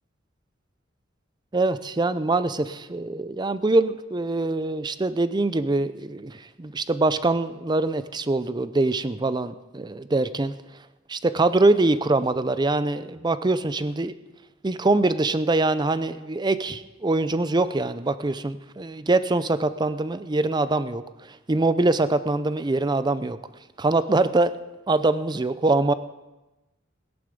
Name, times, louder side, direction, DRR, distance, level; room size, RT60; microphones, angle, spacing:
voice 1, 1.5-10.5 11.1-14.1 14.6-21.0 21.3-23.4 23.8-24.5 24.9-25.9, right 2 dB, 20° right, 13 dB, 0.5 m, -23 dB
17.0 x 10.5 x 5.2 m, 1.1 s
head